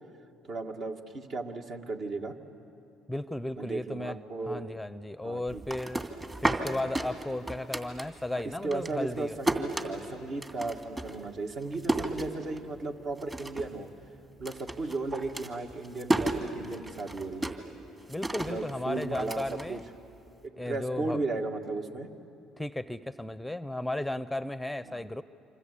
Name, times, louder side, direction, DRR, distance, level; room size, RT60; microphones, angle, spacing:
voice 1, 0.5-2.4 3.6-4.7 5.2-5.6 8.3-13.9 14.4-17.5 18.5-19.8 20.4-22.1 24.8-25.0, right 3 dB, 55° right, 4 dB, 2.1 m, -35 dB
voice 2, 3.1-4.2 4.4-6.0 6.4-9.4 18.1-19.8 20.6-21.2 22.6-25.2, left 1 dB, 5° left, 14 dB, 0.6 m, -35 dB
sound 1, 5.5-8.4 8.7-12.9 13.2-13.8 14.0-20.3, right 2 dB, 25° right, 2.5 m, -33 dB
27.0 x 26.0 x 8.5 m, 2.9 s
supercardioid pair, 75°, 0 cm